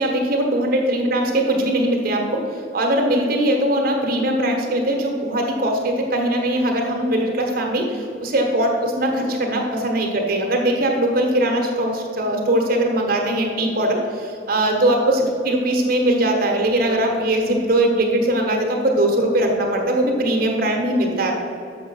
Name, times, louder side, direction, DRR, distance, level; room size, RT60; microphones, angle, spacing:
voice 1, 0.0-21.3, right 1 dB, 55° right, 1 dB, 1.2 m, -20 dB
6.8 x 6.4 x 5.5 m, 2.7 s
head